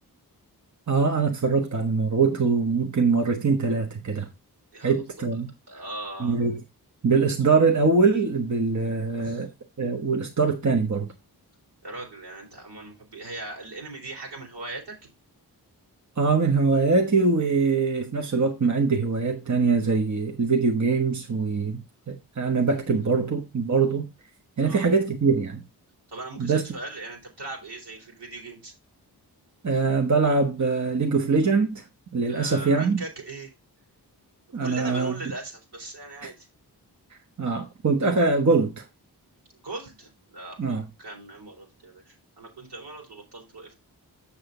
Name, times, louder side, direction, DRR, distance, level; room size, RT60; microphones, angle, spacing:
voice 1, 0.9-4.3 4.8-5.5 6.2-6.6 7.0-9.5 9.8-11.1 16.2-21.8 22.1-24.1 24.6-25.6 26.4-26.6 29.6-31.8 32.1-33.0 34.5-35.1 36.2-36.3 37.4-38.8 40.6-40.8, right 4 dB, 45° right, 1.3 m, -23 dB
voice 2, 4.7-5.2 5.7-6.5 9.2-9.5 11.8-15.1 24.6-24.9 26.1-28.7 32.3-33.5 34.6-36.5 39.6-43.7, right 2 dB, 85° right, 3.8 m, -39 dB
7.1 x 6.6 x 3.9 m
cardioid pair, 40°, 40 cm